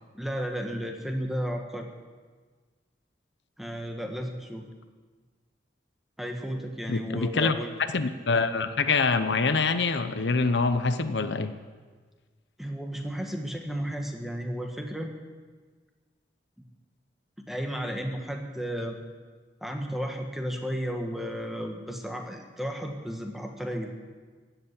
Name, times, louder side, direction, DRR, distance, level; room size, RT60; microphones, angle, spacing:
voice 1, 0.1-1.9 3.6-4.7 6.2-7.7 12.6-15.1 17.4-19.0 19.6-23.9, equal, ahead, 3 dB, 1.4 m, -33 dB
voice 2, 6.9-7.5 7.9-11.5, left 4 dB, 75° left, 10 dB, 0.8 m, -25 dB
15.5 x 8.2 x 9.7 m, 1.5 s
head